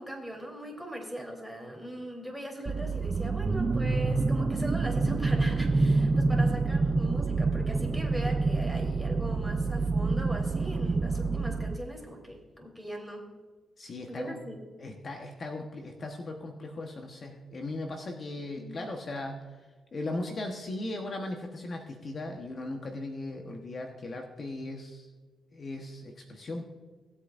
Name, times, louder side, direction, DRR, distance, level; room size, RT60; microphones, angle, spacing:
voice 1, 0.0-13.3 14.1-14.7 18.6-18.8, equal, ahead, -1 dB, 3.6 m, -40 dB
sound 1, 2.7-11.8, right 3 dB, 30° right, 0.6 m, -27 dB
voice 2, 13.8-14.4 14.8-19.3 19.9-25.1 25.5-26.6, left 2 dB, 50° left, 2 dB, 1.2 m, -38 dB
19.0 x 8.4 x 2.6 m, 1.4 s
cardioid pair, 70°, 0 cm